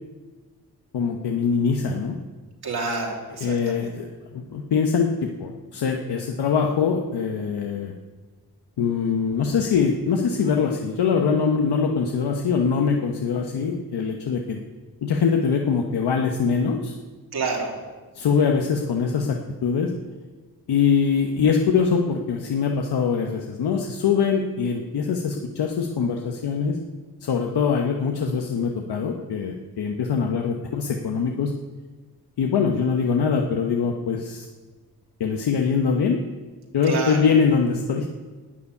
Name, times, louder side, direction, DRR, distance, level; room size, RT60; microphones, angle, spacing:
voice 1, 0.9-2.2 3.4-4.0 4.3-7.9 8.8-14.6 15.0-17.0 18.1-19.9 20.7-26.8 27.2-31.5 32.4-34.4 35.2-36.2 36.7-38.2, left 6 dB, 85° left, 2 dB, 1.1 m, -23 dB
voice 2, 2.6-4.0 17.3-17.7 36.8-37.3, right 3 dB, 75° right, 0 dB, 2.9 m, -28 dB
12.5 x 7.1 x 9.7 m, 1.3 s
wide cardioid pair, 125°, 39 cm